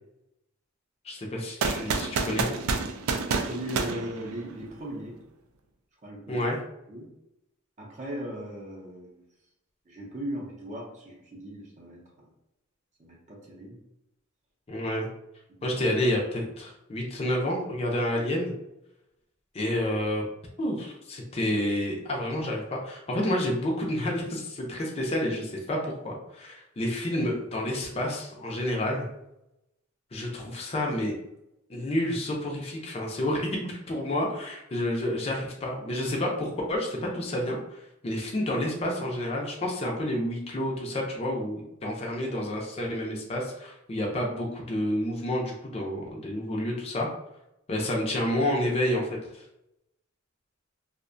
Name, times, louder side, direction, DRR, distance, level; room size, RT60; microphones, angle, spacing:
voice 1, 1.0-2.5 6.3-6.6 14.7-15.1 15.6-18.5 19.5-20.2 20.6-29.1 30.1-31.1 31.7-47.1 47.7-49.4, left 1 dB, 30° left, -1 dB, 0.5 m, -29 dB
sound 1, 1.6-4.8, right 4 dB, 75° right, 0.3 m, -29 dB
voice 2, 3.3-5.2 6.0-6.4 6.9-7.1 7.8-9.2 9.9-12.3 13.0-13.8 15.6-15.7, right 1 dB, 35° right, -2 dB, 0.6 m, -38 dB
2.5 x 2.1 x 2.5 m, 0.85 s
head